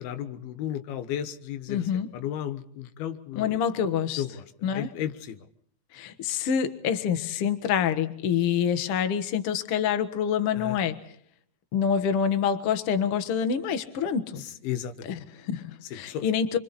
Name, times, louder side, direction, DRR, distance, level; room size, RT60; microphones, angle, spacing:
voice 1, 0.0-1.8 2.1-3.6 4.2-4.4 4.7-5.4 10.5-10.8 14.6-15.2 15.9-16.3, left 10 dB, 90° left, 10 dB, 3.2 m, -34 dB
voice 2, 1.7-2.1 3.4-4.2 4.6-4.9 5.9-11.0 11.7-14.4 15.1-16.6, left 8 dB, 55° left, 9 dB, 1.8 m, -26 dB
28.5 x 25.0 x 4.2 m, 0.65 s
omnidirectional pair, 4.3 m